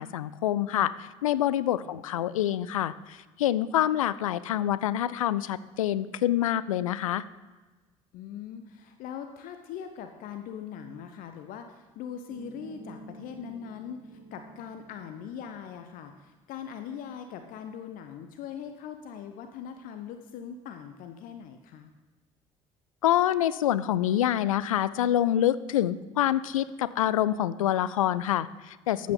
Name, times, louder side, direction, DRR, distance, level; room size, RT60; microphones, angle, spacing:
voice 1, 0.0-7.2 23.0-29.1, left 12 dB, 75° left, 17 dB, 0.4 m, -26 dB
voice 2, 8.1-21.9 29.0-29.1, left 8 dB, 55° left, 7 dB, 0.7 m, -41 dB
sound 1, 12.3-16.3, right 2 dB, 65° right, 1.7 m, -50 dB
13.5 x 8.4 x 3.8 m, 1.2 s
figure-of-eight pair, 60°, 17 cm